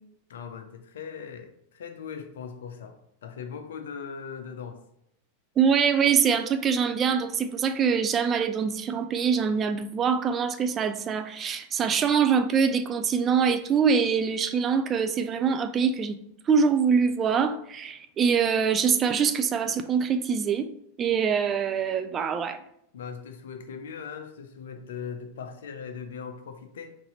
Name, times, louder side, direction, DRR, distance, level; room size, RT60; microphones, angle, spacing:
voice 1, 0.3-4.8 22.9-27.0, left 6 dB, 60° left, 7 dB, 0.5 m, -39 dB
voice 2, 5.6-16.2 16.5-20.7 21.0-22.6, right 6 dB, 25° right, 9 dB, 0.3 m, -24 dB
4.0 x 2.7 x 3.9 m, 0.75 s
figure-of-eight pair, 90°, 0 cm